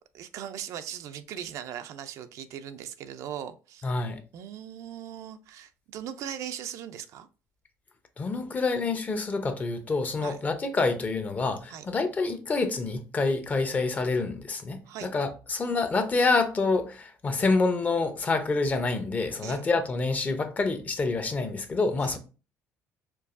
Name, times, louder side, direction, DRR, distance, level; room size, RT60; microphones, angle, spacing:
voice 1, 0.1-3.9 4.3-7.3 10.2-10.4 11.7-11.8 14.9-15.1 19.4-19.7 22.0-22.2, right 10 dB, 65° right, 0.4 m, -39 dB
voice 2, 3.8-4.2 8.2-22.2, left 3 dB, 30° left, 0.6 m, -27 dB
4.6 x 2.6 x 2.5 m
cardioid pair, 110°, 6 cm